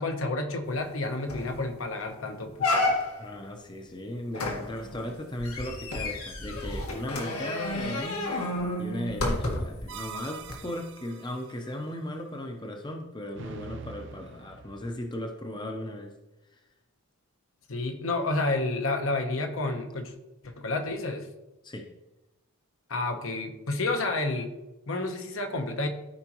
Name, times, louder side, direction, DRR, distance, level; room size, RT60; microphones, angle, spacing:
voice 1, 0.0-2.7 17.7-20.1 20.4-21.3 22.9-24.5 24.9-25.9, left 2 dB, 65° left, 5 dB, 0.9 m, -30 dB
sound 1, 0.8-0.9 1.3-1.6 2.0-2.1 2.6-3.3 4.3-9.8 10.4-10.5, left 2 dB, 85° left, 1.7 m, -30 dB
voice 2, 3.2-8.4 8.8-16.1 16.5-16.6 21.6-21.9, left 1 dB, 20° left, 3 dB, 0.7 m, -37 dB
sound 2, 9.9-11.5 13.3-14.9, right 5 dB, 55° right, 0.6 m, -43 dB
13.5 x 5.0 x 3.0 m, 0.97 s
head